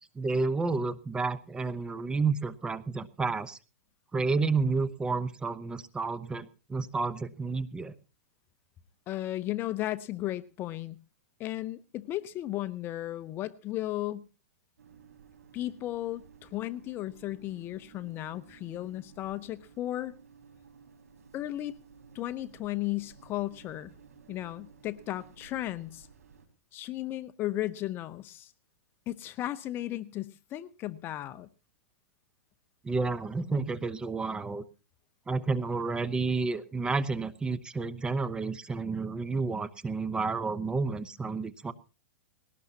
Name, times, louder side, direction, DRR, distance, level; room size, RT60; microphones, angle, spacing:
voice 1, 0.2-3.6 4.1-7.9 32.8-34.6 35.3-41.7, right 4 dB, 10° right, 14 dB, 0.8 m, -30 dB
voice 2, 9.1-11.0 11.4-14.3 15.5-20.1 21.3-21.8 22.1-23.9 24.3-26.1 26.7-28.5 29.1-31.5, left 15 dB, 30° left, 15 dB, 0.8 m, -35 dB
sound 1, 14.8-26.5, right 6 dB, 85° right, 5.1 m, -55 dB
20.5 x 18.0 x 2.8 m, 0.33 s
hypercardioid pair, 145°, 8 cm